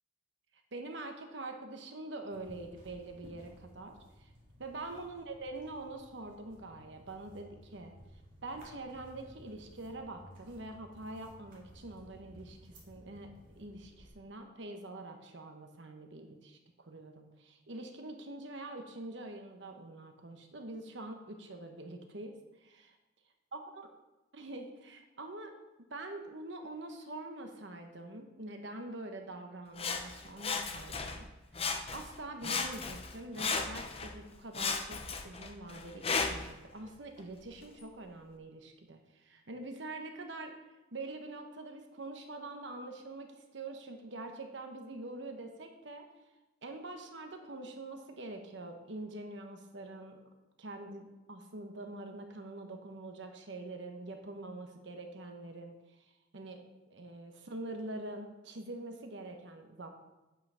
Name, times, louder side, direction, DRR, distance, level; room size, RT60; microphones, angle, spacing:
voice 1, 0.7-4.3 4.6-7.9 8.4-22.3 22.6-23.0 23.5-23.9 24.3-25.5 25.9-31.3 31.6-35.0 35.2-40.5 40.9-46.1 46.6-50.2 50.6-55.7 56.3-59.9, right 2 dB, 65° right, 4 dB, 1.1 m, -45 dB
sound 1, 2.3-14.1, equal, 45° right, 2.4 m, -57 dB
Sawing, 29.8-31.2 31.5-32.2 32.4-34.1 34.5-36.5 37.2-37.3, left 4 dB, 30° left, 0.7 m, -35 dB
9.0 x 5.7 x 5.6 m, 1.0 s
head